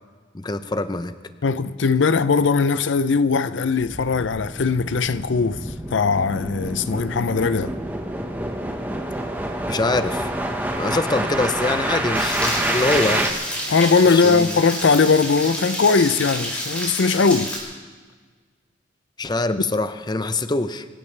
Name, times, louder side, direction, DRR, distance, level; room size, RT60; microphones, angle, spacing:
voice 1, 0.3-1.1 9.7-10.3 10.8-13.3 14.1-14.6 19.2-20.9, left 2 dB, 20° left, 0.6 m, -24 dB
voice 2, 1.4-7.7 13.7-17.5, left 4 dB, 80° left, 0.5 m, -19 dB
sound 1, 3.8-13.3, right 1 dB, 10° right, 1.2 m, -27 dB
sound 2, 12.1-17.6, equal, 5° left, 4.2 m, -29 dB
26.0 x 15.5 x 3.3 m
head